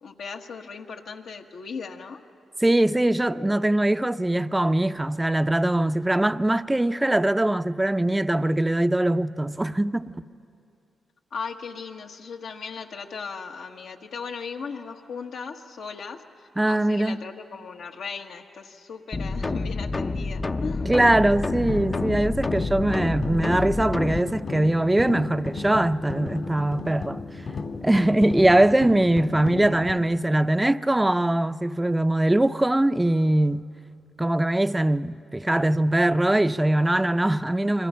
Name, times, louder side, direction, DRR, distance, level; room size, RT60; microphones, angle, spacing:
voice 1, 0.0-2.2 11.3-20.9, left 5 dB, 80° left, 1.4 m, -37 dB
voice 2, 2.6-10.1 16.6-17.2 20.9-27.2 27.8-33.6 34.2-37.9, right 1 dB, 15° right, 0.6 m, -22 dB
sound 1, 19.1-24.2, left 3 dB, 35° left, 0.6 m, -28 dB
sound 2, 21.7-30.0, left 4 dB, 60° left, 2.2 m, -34 dB
28.5 x 23.5 x 5.6 m
cardioid pair, 65°, 0 cm